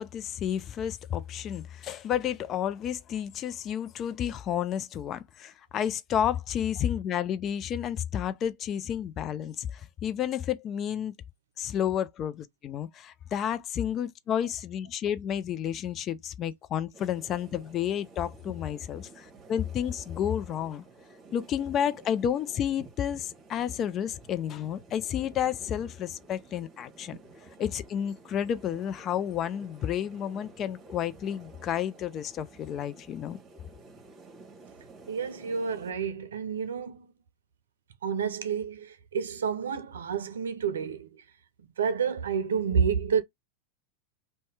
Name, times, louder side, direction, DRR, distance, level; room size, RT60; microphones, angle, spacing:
voice 1, 0.0-11.1 11.6-20.8 21.3-27.2 27.6-33.4, left 9 dB, 35° left, 0.4 m, -31 dB
sound 1, 16.9-35.9, right 3 dB, 25° right, 1.1 m, -52 dB
voice 2, 35.1-37.1 38.0-41.2 41.6-43.2, right 6 dB, 80° right, 0.5 m, -29 dB
2.7 x 2.1 x 3.2 m
hypercardioid pair, 95°, 0 cm